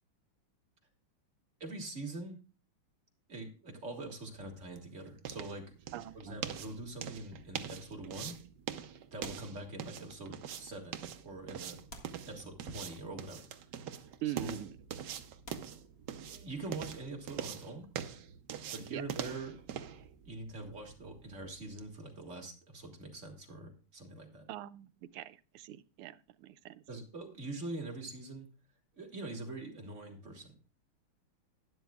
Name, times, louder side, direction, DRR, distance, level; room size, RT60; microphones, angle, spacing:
voice 1, 1.6-2.4 3.3-5.7 6.1-8.4 8.9-11.8 12.3-13.5 14.3-14.6 16.2-17.9 18.7-19.6 20.3-24.5 26.9-28.5 29.0-30.5, right 2 dB, 35° right, 2 dB, 2.1 m, -44 dB
sound 1, 4.1-21.9, right 9 dB, 65° right, 1.2 m, -44 dB
voice 2, 5.9-6.4 14.2-14.8 18.9-19.0 24.5-26.8, right 14 dB, 85° right, 13 dB, 1.6 m, -42 dB
sound 2, 9.2-10.3 11.0-11.1 11.9-13.0 13.9-14.1 14.8-14.9 15.4-16.6 18.5-20.3 20.6-20.8, left 1 dB, 30° left, 1.8 m, -55 dB
12.0 x 11.0 x 2.3 m, 0.35 s
omnidirectional pair, 2.4 m